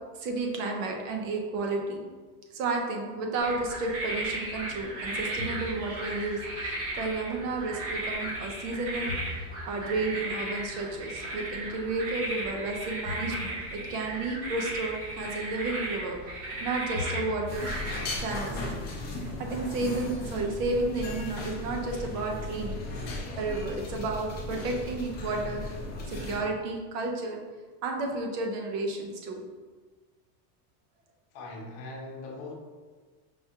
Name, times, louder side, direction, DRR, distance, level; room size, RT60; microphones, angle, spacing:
voice 1, 0.1-2.0 2.5-9.1 9.7-16.2 16.6-17.7 18.2-18.6 19.1-22.8 23.4-25.7 26.1-27.4 27.8-29.4, right 3 dB, 75° right, 1 dB, 0.9 m, -32 dB
sound 1, 3.4-18.2, right 1 dB, 30° right, 0.7 m, -35 dB
sound 2, 17.5-26.4, left 2 dB, 20° left, 0.5 m, -36 dB
voice 2, 31.3-32.5, left 2 dB, 50° left, -1 dB, 0.8 m, -40 dB
5.3 x 2.3 x 2.8 m, 1.4 s
supercardioid pair, 165°, 48 cm